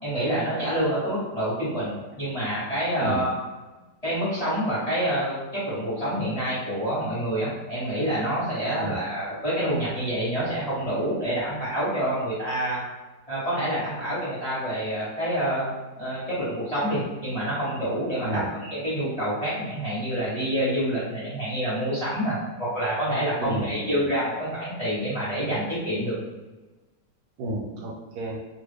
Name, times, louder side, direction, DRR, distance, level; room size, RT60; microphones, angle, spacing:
voice 1, 0.0-3.4 4.0-5.3 5.6-12.8 13.3-26.1, equal, 25° left, -10 dB, 1.3 m, -27 dB
voice 2, 3.0-3.3 8.7-9.0 18.2-18.5 23.4-24.1 27.4-28.4, right 1 dB, 75° right, -2 dB, 1.1 m, -31 dB
2.9 x 2.4 x 3.3 m, 1.2 s
omnidirectional pair, 1.8 m